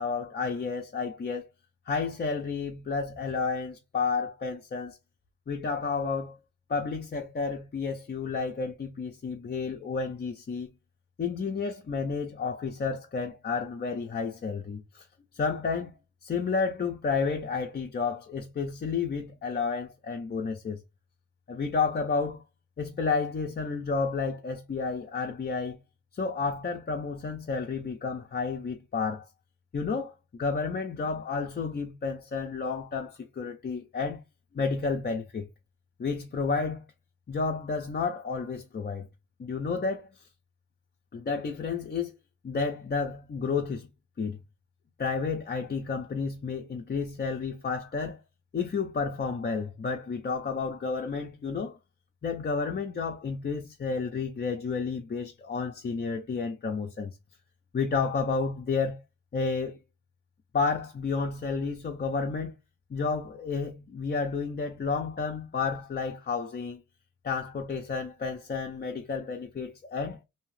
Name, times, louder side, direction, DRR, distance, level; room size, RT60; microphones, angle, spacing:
voice 1, 0.0-1.5 1.9-5.0 5.5-6.4 6.7-10.7 11.2-15.0 15.3-15.9 16.2-20.8 21.5-22.4 22.8-25.8 26.1-29.3 29.7-34.2 34.5-35.5 36.0-36.8 37.3-39.1 39.4-40.1 41.1-42.1 42.4-43.9 44.2-44.4 45.0-48.2 48.5-51.8 52.2-57.2 57.7-59.0 59.3-59.8 60.5-62.5 62.9-66.8 67.2-70.2, left 4 dB, 30° left, 0.5 m, -31 dB
2.7 x 2.4 x 3.1 m
wide cardioid pair, 110°, 32 cm